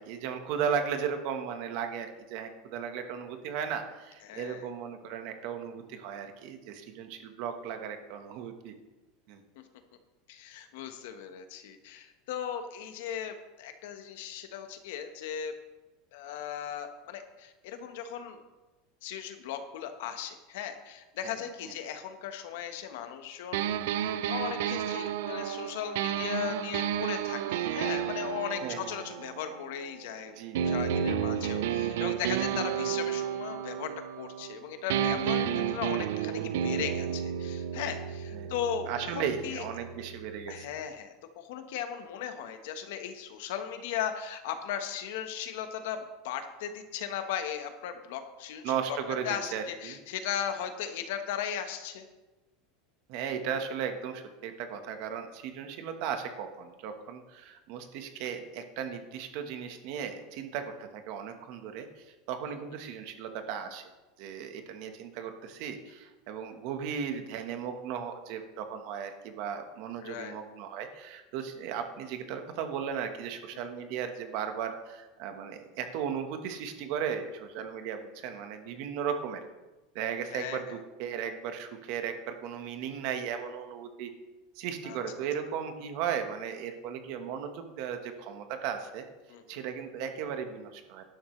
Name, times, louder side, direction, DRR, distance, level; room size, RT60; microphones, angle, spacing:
voice 1, 0.0-8.7 9.3-9.4 21.2-21.4 28.6-28.8 30.4-30.8 31.4-31.5 38.3-38.5 38.9-40.7 48.6-50.0 53.1-63.8 64.2-79.4 79.9-84.1 84.5-89.0 89.5-91.0, right 7 dB, 50° right, 7 dB, 1.3 m, -36 dB
voice 2, 4.2-4.7 9.5-9.6 10.3-15.5 16.1-18.4 19.0-30.4 30.6-33.9 34.2-38.9 39.1-39.6 40.5-48.7 49.2-52.1 62.5-62.6 70.0-70.4 73.5-73.7 80.3-80.8 84.8-85.0 89.3-89.6, left 9 dB, 70° left, 7 dB, 1.3 m, -37 dB
sound 1, 23.5-30.1 30.5-34.6 34.9-40.6, right 9 dB, 75° right, 0.5 m, -32 dB
12.5 x 11.5 x 3.3 m, 1.1 s
supercardioid pair, 170°, 0 cm